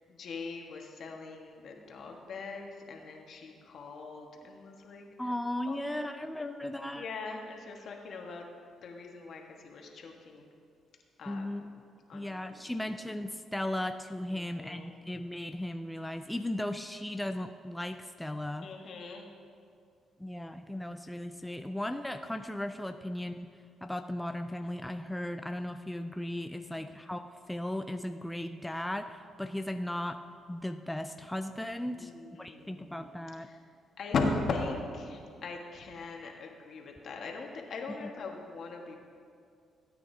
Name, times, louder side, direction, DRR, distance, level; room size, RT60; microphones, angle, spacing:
voice 1, 0.2-5.0 5.7-8.4 8.8-10.5 11.2-11.5 12.1-12.6 14.4-14.9 18.6-19.3 26.8-26.9 31.9-33.1 34.0-38.9, left 3 dB, 60° left, 1 dB, 1.4 m, -39 dB
voice 2, 5.2-7.1 11.3-11.8 12.1-18.7 20.2-23.5 23.8-30.2 30.5-32.1 32.4-33.5 38.0-38.1, left 1 dB, 5° left, 7 dB, 0.4 m, -36 dB
17.0 x 8.9 x 2.8 m, 2.3 s
cardioid pair, 90°, 0 cm